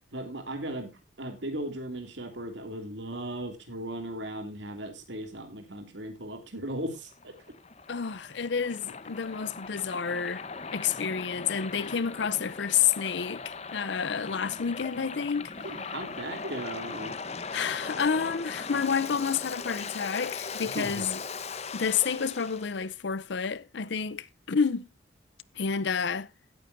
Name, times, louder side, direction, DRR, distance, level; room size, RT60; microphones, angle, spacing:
voice 1, 0.1-0.9 1.2-7.4 15.6-17.2 20.7-21.0, right 1 dB, 70° right, 2.5 m, -37 dB
Waves surf, 6.9-22.7, left 4 dB, 35° left, 0.8 m, -39 dB
voice 2, 7.9-10.4 10.7-15.5 17.5-21.2 21.7-24.9 25.6-26.3, left 6 dB, 65° left, 0.6 m, -29 dB
17.0 x 8.9 x 2.6 m
head